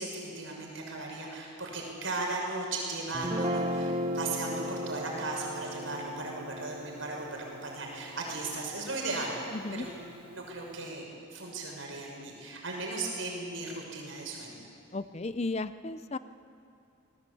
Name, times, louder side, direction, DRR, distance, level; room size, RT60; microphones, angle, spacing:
voice 1, 0.0-9.3 9.7-14.6, right 2 dB, 75° right, 0 dB, 6.4 m, -37 dB
Guitar, 3.1-9.5, equal, 25° right, 0.9 m, -36 dB
voice 2, 9.5-9.9 14.9-16.2, left 3 dB, 30° left, 13 dB, 0.5 m, -34 dB
26.5 x 20.0 x 8.5 m, 2.4 s
head